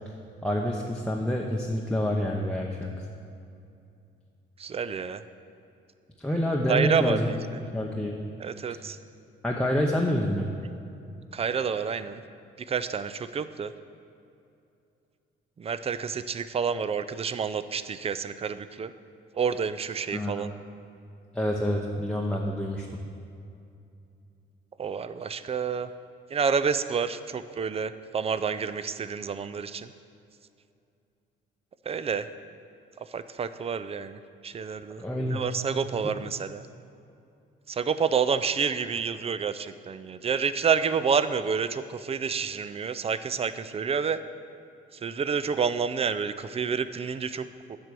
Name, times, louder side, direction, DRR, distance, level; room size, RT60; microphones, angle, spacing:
voice 1, 0.4-2.9 6.2-7.3 7.7-8.1 9.4-10.5 20.1-20.5 21.3-22.9 35.0-35.4, equal, 5° left, -1 dB, 0.8 m, -27 dB
voice 2, 4.6-5.2 6.7-7.4 8.4-9.0 11.3-12.2 12.7-13.7 15.6-18.9 19.3-20.5 24.8-25.9 26.3-29.9 31.9-32.3 33.1-36.6 37.7-44.2 44.9-47.8, right 6 dB, 30° right, 13 dB, 0.4 m, -29 dB
7.8 x 6.0 x 6.8 m, 2.6 s
cardioid pair, 90°, 20 cm